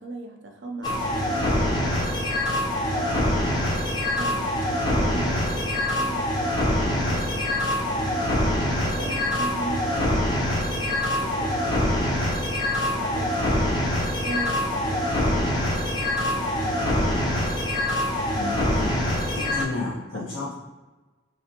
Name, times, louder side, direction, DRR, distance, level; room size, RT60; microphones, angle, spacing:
voice 1, 0.0-2.4 2.9-3.2 4.2-6.3 6.8-8.3 8.8-10.3 10.7-12.4 12.8-13.8 14.2-17.3 20.1-20.3, right 2 dB, 70° right, 3 dB, 0.5 m, -38 dB
sound 1, 0.8-19.6, left 1 dB, 20° left, 0.4 m, -24 dB
voice 2, 18.3-19.0 19.3-20.5, left 3 dB, 90° left, -12 dB, 1.0 m, -32 dB
3.3 x 2.8 x 2.8 m, 1.2 s
head